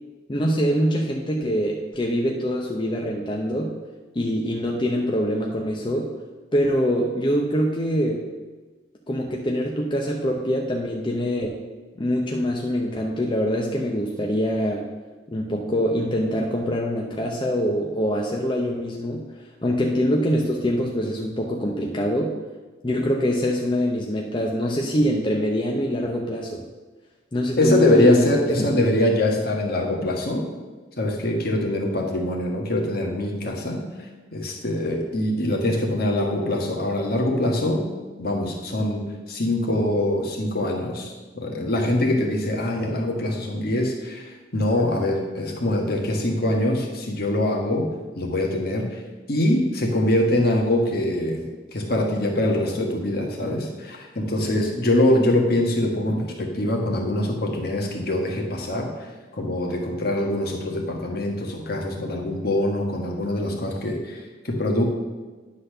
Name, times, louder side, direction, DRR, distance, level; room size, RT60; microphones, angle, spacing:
voice 1, 0.3-3.7 4.1-6.1 6.5-8.2 9.1-11.5 12.0-14.9 15.3-19.2 19.6-22.3 22.8-26.6 27.3-28.3 28.6-28.8, equal, 25° left, -1 dB, 0.7 m, -24 dB
voice 2, 27.6-30.4 31.0-33.8 34.3-37.8 38.2-47.8 48.1-49.0 49.3-51.4 51.7-58.9 59.3-64.8, left 1 dB, 55° left, 1 dB, 1.5 m, -23 dB
10.0 x 4.2 x 6.6 m, 1.3 s
head